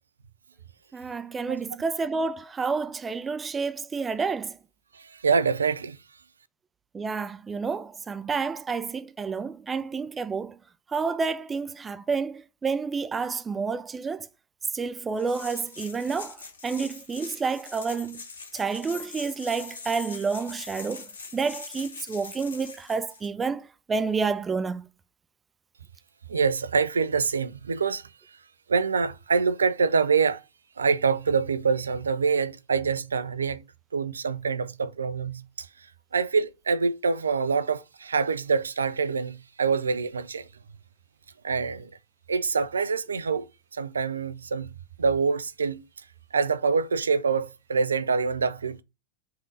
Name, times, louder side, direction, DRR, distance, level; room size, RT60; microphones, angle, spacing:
voice 1, 0.9-4.6 6.9-10.6 10.9-14.3 14.7-16.4 16.6-18.2 18.5-24.9, right 5 dB, 15° right, 0.4 m, -29 dB
voice 2, 4.9-6.0 26.3-28.4 28.7-30.4 30.8-33.6 33.9-35.9 36.1-40.5 41.4-41.9 42.3-45.8 46.3-48.8, right 5 dB, 70° right, 0.5 m, -26 dB
sound 1, 15.2-23.3, left 4 dB, 65° left, 1.7 m, -42 dB
5.5 x 3.7 x 5.3 m
figure-of-eight pair, 90°, 0 cm